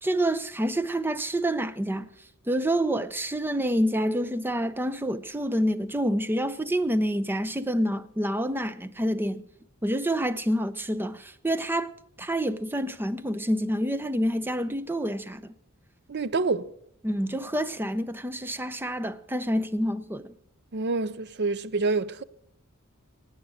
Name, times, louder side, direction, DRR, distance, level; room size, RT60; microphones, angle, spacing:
voice 1, 0.0-2.1 2.5-9.5 9.8-11.9 12.2-15.5 17.0-20.3, equal, 10° right, 0.6 m, -27 dB
voice 2, 16.1-16.7 20.7-22.2, right 3 dB, 55° right, 0.6 m, -27 dB
16.5 x 9.2 x 6.3 m
head